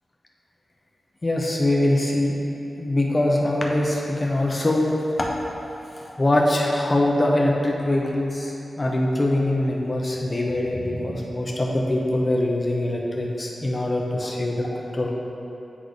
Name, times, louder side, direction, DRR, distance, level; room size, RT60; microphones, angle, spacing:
voice 1, 1.2-2.4 2.8-4.9 5.2-5.3 6.0-15.1, left 1 dB, 25° left, -2 dB, 0.8 m, -23 dB
9.7 x 3.3 x 4.1 m, 2.9 s
wide cardioid pair, 120°, 0 cm